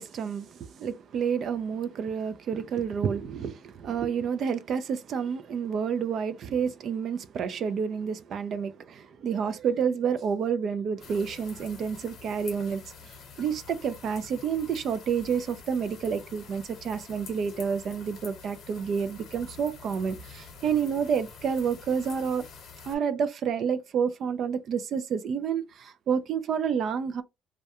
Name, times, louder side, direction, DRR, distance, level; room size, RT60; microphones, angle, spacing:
voice 1, 0.0-12.8 13.4-22.4 22.8-27.2, right 7 dB, 55° right, 0.3 m, -29 dB
sound 1, 11.0-23.0, left 5 dB, 60° left, 0.8 m, -47 dB
2.2 x 2.2 x 2.7 m
cardioid pair, 110°, 0 cm